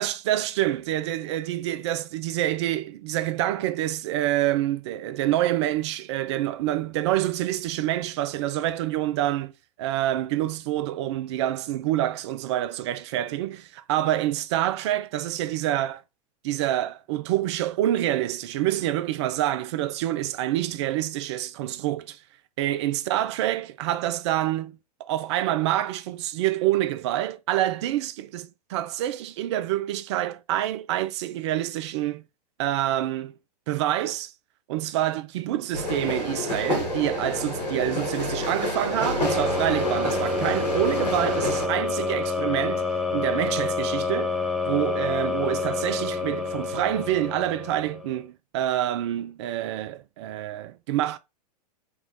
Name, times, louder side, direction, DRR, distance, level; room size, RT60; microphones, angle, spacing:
voice 1, 0.0-9.5 9.8-16.0 16.4-22.2 22.6-32.2 32.6-33.3 33.7-34.3 34.7-42.8 43.1-44.4 44.6-51.2, right 13 dB, 45° right, 0.4 m, -27 dB
sound 1, 35.7-41.6, left 1 dB, 80° left, 1.7 m, -29 dB
sound 2, 39.2-48.2, left 4 dB, ahead, 0.7 m, -28 dB
3.6 x 2.4 x 3.1 m
figure-of-eight pair, 100°, 21 cm